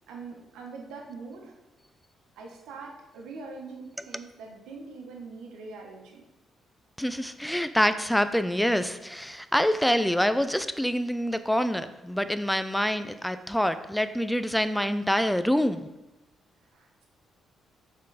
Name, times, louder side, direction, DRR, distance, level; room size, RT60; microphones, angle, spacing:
voice 1, 0.1-1.5 2.4-6.2 16.7-17.1, right 4 dB, 90° right, 0 dB, 1.1 m, -43 dB
voice 2, 7.0-15.8, equal, 5° left, 11 dB, 0.4 m, -26 dB
6.3 x 3.7 x 4.1 m, 0.99 s
cardioid pair, 90°, 0 cm